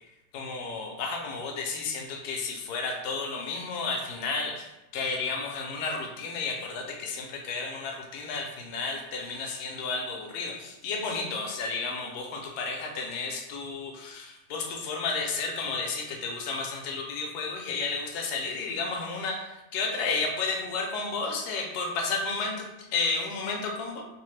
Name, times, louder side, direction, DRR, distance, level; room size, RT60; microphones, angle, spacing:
voice 1, 0.3-19.5 19.7-24.0, left 4 dB, 80° left, 2 dB, 1.1 m, -32 dB
2.8 x 2.1 x 3.1 m, 0.99 s
omnidirectional pair, 1.7 m